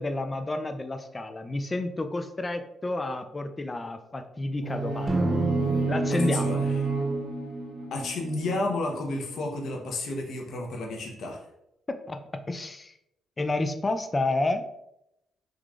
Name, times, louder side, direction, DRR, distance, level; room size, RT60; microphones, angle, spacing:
voice 1, 0.0-5.3 5.9-6.7 11.9-12.9 13.4-14.7, left 2 dB, 25° left, 8 dB, 0.4 m, -30 dB
sound 1, 4.6-8.6, right 4 dB, 85° right, 1.2 m, -30 dB
sound 2, 5.1-9.2, right 1 dB, 35° right, 0.6 m, -31 dB
voice 2, 6.2-6.7 7.9-11.4, left 2 dB, 65° left, 1 dB, 0.8 m, -31 dB
3.8 x 3.1 x 2.4 m, 0.83 s
cardioid pair, 90°, 0 cm